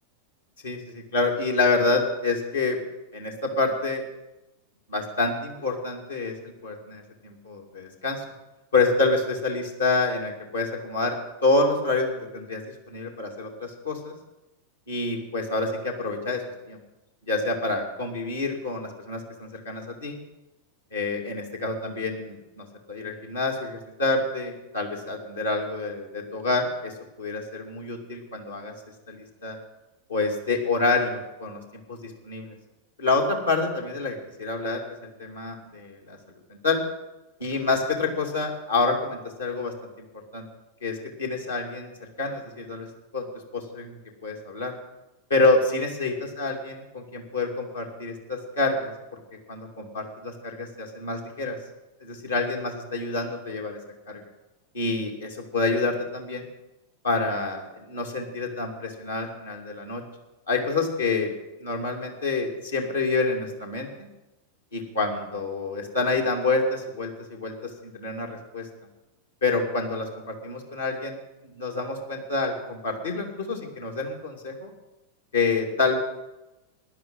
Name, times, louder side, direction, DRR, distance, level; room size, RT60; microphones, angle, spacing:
voice 1, 0.6-2.8 3.1-4.0 4.9-8.2 8.7-14.1 14.9-16.4 16.7-16.8 17.3-20.2 20.9-26.9 27.2-28.7 29.1-29.6 30.1-31.6 31.9-32.5 33.0-36.2 36.6-36.8 37.4-39.7 40.3-40.5 40.8-41.9 42.2-42.9 43.1-43.3 43.5-44.7 45.3-49.2 49.5-51.6 52.0-53.8 54.1-54.2 54.7-56.4 57.0-60.0 60.5-61.3 61.6-64.1 64.7-68.6 69.4-71.2 71.5-74.7 75.3-76.0, left 3 dB, 75° left, 0 dB, 2.6 m, -27 dB
15.5 x 11.0 x 5.6 m, 0.99 s
figure-of-eight pair, 90°, 0 cm